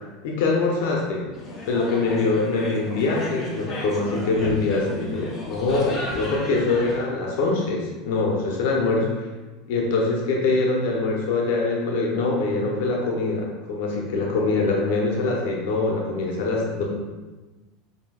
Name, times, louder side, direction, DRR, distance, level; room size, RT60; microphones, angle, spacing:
voice 1, 0.2-1.2 1.7-9.3 9.7-16.8, left 3 dB, 70° left, -1 dB, 0.6 m, -24 dB
sound 1, 1.3-7.0, left 1 dB, 25° left, 0.9 m, -34 dB
5.4 x 2.7 x 2.3 m, 1.2 s
supercardioid pair, 140°, 0 cm